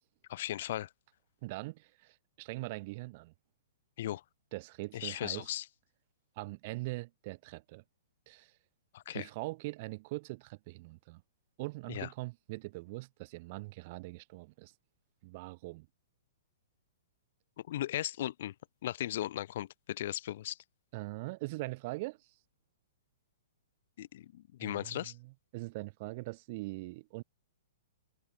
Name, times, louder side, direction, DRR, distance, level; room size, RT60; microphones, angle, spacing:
voice 1, 0.3-0.9 4.0-4.2 4.9-5.6 8.9-9.3 11.9-12.1 17.7-18.5 18.8-20.6 24.0-25.1, left 13 dB, 60° left, 6.6 m, -37 dB
voice 2, 1.4-3.3 4.5-5.5 6.4-7.8 8.3-8.5 9.1-11.2 11.6-14.7 15.2-15.9 20.9-22.2 24.6-27.2, right 22 dB, 45° right, 7.2 m, -42 dB
hypercardioid pair, 125°, 0 cm